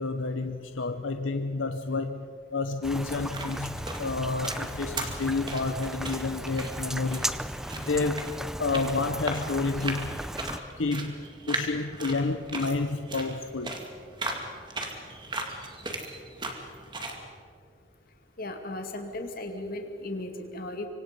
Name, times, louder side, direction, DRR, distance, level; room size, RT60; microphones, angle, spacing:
voice 1, 0.0-7.3 7.7-8.3 8.6-10.2 10.8-13.8, left 3 dB, 70° left, 7 dB, 0.8 m, -30 dB
Rain, 2.8-10.6, equal, ahead, 0.5 m, -36 dB
sound 1, 3.1-17.2, right 2 dB, 25° right, 2.3 m, -38 dB
voice 2, 18.4-20.9, left 1 dB, 45° left, 4 dB, 2.3 m, -36 dB
25.5 x 25.0 x 5.3 m, 2.4 s
head